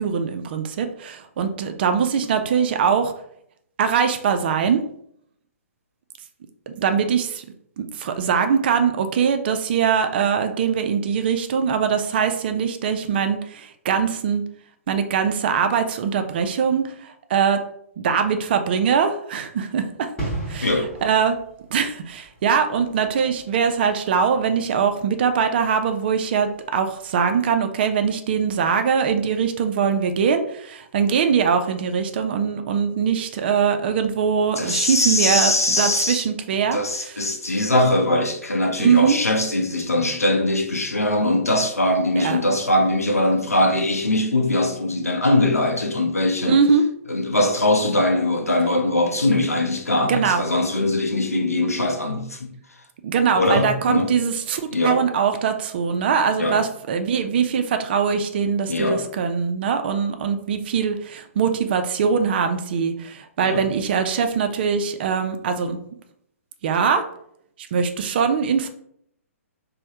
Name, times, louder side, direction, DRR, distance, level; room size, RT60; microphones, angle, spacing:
voice 1, 0.0-3.1 3.8-4.8 6.7-7.5 7.8-14.4 14.9-17.6 18.0-20.1 20.5-21.4 21.7-37.1 38.8-39.2 42.2-42.4 46.5-46.8 50.0-50.5 53.0-65.8 66.6-67.0 67.7-68.7, right 6 dB, 45° right, 0.3 m, -22 dB
sound 1, 20.2-26.7 26.9-27.1, right 2 dB, 10° left, 1.1 m, -37 dB
voice 2, 34.6-36.2 36.7-46.6 47.1-52.5 53.3-54.1 54.7-55.0 56.4-56.6 58.7-59.0 63.4-63.6, left 1 dB, 85° left, 0.5 m, -21 dB
3.2 x 2.0 x 2.7 m
figure-of-eight pair, 120°, 8 cm